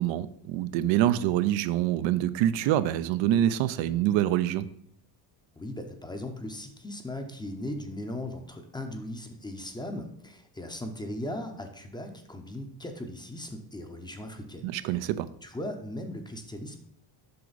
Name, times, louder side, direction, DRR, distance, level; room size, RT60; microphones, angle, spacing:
voice 1, 0.0-4.7 14.6-15.3, right 12 dB, 80° right, 13 dB, 0.6 m, -25 dB
voice 2, 5.6-15.1 15.4-16.8, left 1 dB, 10° left, 5 dB, 0.6 m, -38 dB
7.7 x 6.0 x 4.0 m, 0.69 s
cardioid pair, 155°, 45 cm